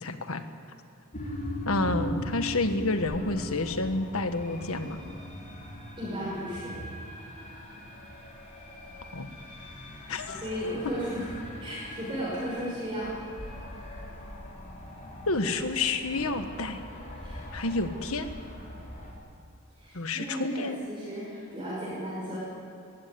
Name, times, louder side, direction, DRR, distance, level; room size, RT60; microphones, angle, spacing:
voice 1, 0.0-0.4 1.6-5.0 9.1-9.3 10.1-10.4 15.3-16.8 17.5-18.3 19.9-20.8, left 2 dB, 75° left, 8 dB, 1.5 m, -29 dB
sound 1, 1.1-19.1, left 1 dB, 35° left, 3.8 m, -40 dB
voice 2, 6.0-6.8 10.4-13.1 17.2-17.7 19.8-22.4, equal, 20° right, -7 dB, 6.0 m, -35 dB
20.0 x 16.0 x 9.6 m, 2.6 s
head